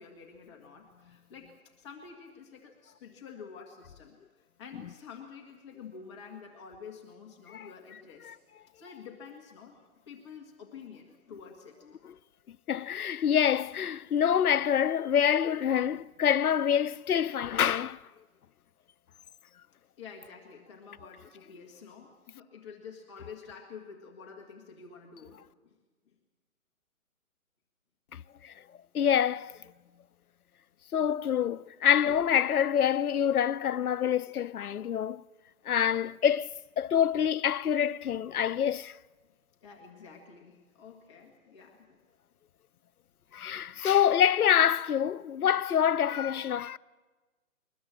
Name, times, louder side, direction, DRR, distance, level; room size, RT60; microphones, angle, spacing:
voice 1, 0.0-8.4 8.7-9.7 10.1-11.8 20.0-25.8 26.0-26.1 39.2-39.3 39.6-42.0, left 6 dB, 20° left, 1.6 m, -49 dB
voice 2, 12.5-18.0 28.1-28.5 28.9-29.6 30.9-35.2 35.7-38.9 43.3-46.8, left 9 dB, 90° left, 0.7 m, -26 dB
22.0 x 20.0 x 7.5 m
hypercardioid pair, 160°, 43 cm